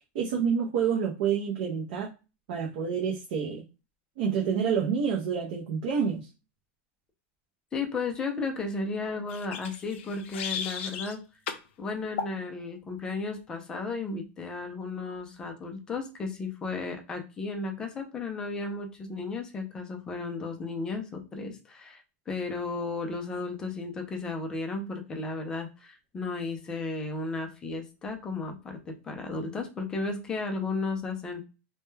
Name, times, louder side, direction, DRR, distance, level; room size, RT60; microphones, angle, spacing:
voice 1, 0.1-2.1 2.5-3.6 4.2-6.3, right 7 dB, 50° right, -1 dB, 0.5 m, -28 dB
voice 2, 7.7-11.2 11.8-31.4, left 3 dB, 10° left, 3 dB, 0.4 m, -34 dB
sound 1, 9.3-11.2 11.5-11.7 12.2-12.4, left 7 dB, 70° left, 0.5 m, -35 dB
2.2 x 2.1 x 3.1 m, 0.30 s
supercardioid pair, 175°, 7 cm